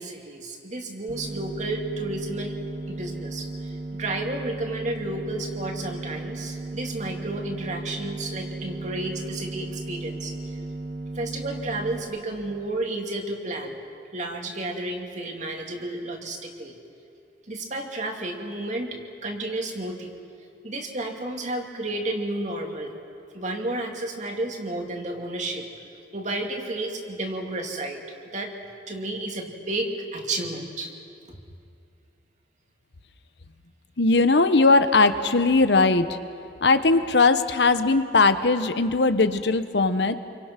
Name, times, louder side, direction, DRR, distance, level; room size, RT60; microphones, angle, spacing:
voice 1, 0.0-2.6 2.9-10.3 11.1-13.8 14.1-16.7 17.5-20.2 20.6-23.0 23.3-25.7 26.1-28.0 28.3-28.5 28.9-30.9 31.3-31.4, right 2 dB, 45° right, 2 dB, 2.5 m, -32 dB
sound 1, 1.1-12.0, right 2 dB, 65° right, 2.6 m, -35 dB
voice 2, 34.0-36.2 36.6-40.2, left 3 dB, 70° left, 10 dB, 1.1 m, -19 dB
29.0 x 24.0 x 6.0 m, 2.5 s
head